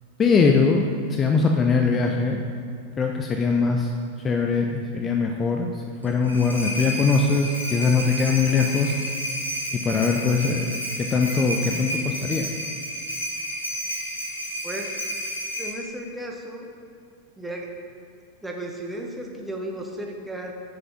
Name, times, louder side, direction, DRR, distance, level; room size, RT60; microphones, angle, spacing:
voice 1, 0.2-0.8 1.1-2.4 3.0-3.9 4.2-8.9 9.7-12.5, left 4 dB, 25° left, 2 dB, 0.6 m, -22 dB
sound 1, 6.0-15.7, equal, 85° left, 2.3 m, -31 dB
voice 2, 15.6-16.7 17.4-17.7 18.4-20.5, right 1 dB, 5° right, 0 dB, 1.2 m, -34 dB
7.0 x 6.7 x 5.2 m, 2.3 s
figure-of-eight pair, 90°, 0 cm